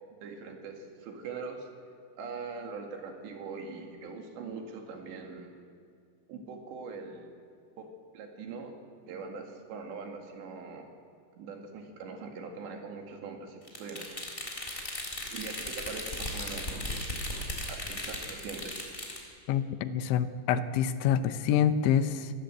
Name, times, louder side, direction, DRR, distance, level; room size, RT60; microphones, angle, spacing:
voice 1, 0.2-1.7 2.2-5.5 6.3-7.3 7.8-7.9 8.1-8.7 9.1-10.9 11.4-14.3 15.3-17.2 17.7-18.9, right 4 dB, 75° right, 3 dB, 4.4 m, -42 dB
sound 1, 13.7-19.2, left 1 dB, 15° left, 3.1 m, -37 dB
voice 2, 19.5-22.3, left 9 dB, 85° left, 12 dB, 3.2 m, -27 dB
25.0 x 17.5 x 7.9 m, 2.3 s
omnidirectional pair, 5.2 m